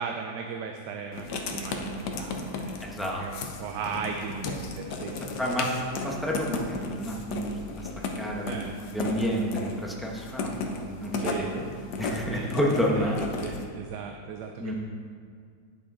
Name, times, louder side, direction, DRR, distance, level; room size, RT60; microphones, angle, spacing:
voice 1, 0.0-2.8 3.2-5.2 8.5-8.7 11.2-11.5 12.3-12.5 13.0-13.1 13.4-14.7, right 6 dB, 85° right, 4 dB, 1.2 m, -36 dB
Writing, 1.1-13.6, left 3 dB, 80° left, 1.4 m, -35 dB
voice 2, 2.8-3.2 5.4-7.9 8.2-11.6 12.0-13.4 14.6-14.7, equal, ahead, -3 dB, 0.6 m, -30 dB
sound 1, 6.2-8.4 11.7-13.2, left 5 dB, 20° left, 2.0 m, -52 dB
10.0 x 7.2 x 3.7 m, 2.2 s
omnidirectional pair, 1.8 m